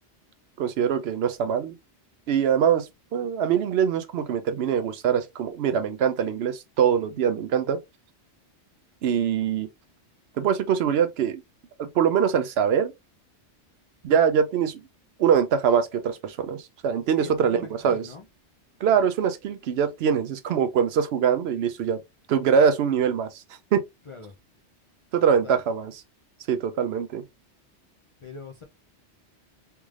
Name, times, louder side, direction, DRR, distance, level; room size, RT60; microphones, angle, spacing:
voice 1, 0.6-1.7 2.3-2.9 3.1-7.8 9.0-9.7 10.4-11.4 11.8-12.9 14.0-14.8 15.2-18.1 18.8-22.0 22.3-23.4 23.7-23.8 25.1-26.0 26.5-27.2, right 7 dB, 70° right, 0.8 m, -23 dB
voice 2, 17.1-18.2 24.1-24.3 25.4-25.6 28.2-28.6, left 4 dB, 55° left, 0.3 m, -42 dB
3.5 x 3.2 x 2.4 m
omnidirectional pair, 1.2 m